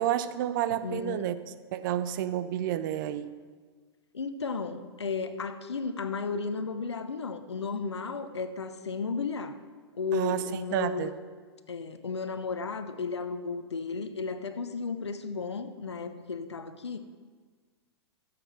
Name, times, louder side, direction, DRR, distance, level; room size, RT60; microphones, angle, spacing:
voice 1, 0.0-1.3 1.7-3.3 10.1-10.4 10.7-11.1, right 12 dB, 45° right, 13 dB, 0.6 m, -30 dB
voice 2, 0.8-1.3 4.1-9.6 9.9-11.1 11.7-17.0, left 4 dB, 80° left, 10 dB, 0.9 m, -34 dB
14.5 x 7.8 x 4.8 m, 1.5 s
figure-of-eight pair, 110°, 14 cm